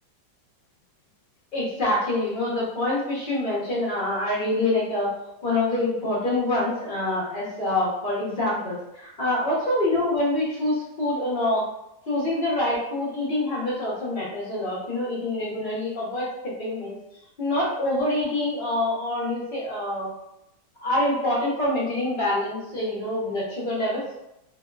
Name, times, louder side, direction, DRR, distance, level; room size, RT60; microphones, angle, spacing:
voice 1, 1.5-5.1 5.4-11.6 12.1-17.0 17.4-20.1 20.8-24.0, left 1 dB, 50° left, -6 dB, 0.6 m, -26 dB
3.0 x 2.7 x 2.3 m, 0.85 s
omnidirectional pair, 2.0 m